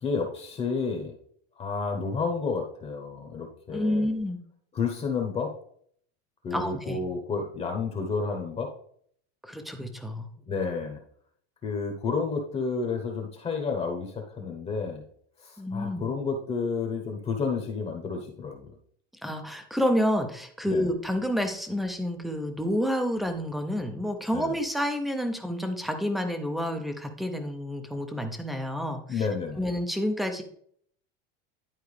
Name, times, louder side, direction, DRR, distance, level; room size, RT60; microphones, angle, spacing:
voice 1, 0.0-1.1 1.6-4.1 4.7-5.5 6.4-8.7 10.5-11.0 11.6-15.0 15.4-18.8 20.6-20.9 24.3-24.5 29.1-29.6, left 4 dB, 20° left, 2 dB, 0.9 m, -30 dB
voice 2, 3.7-4.4 6.5-7.0 9.4-10.3 15.6-16.1 19.2-29.3 29.6-30.4, equal, ahead, 7 dB, 0.5 m, -29 dB
10.5 x 4.5 x 3.2 m, 0.62 s
supercardioid pair, 155°, 33 cm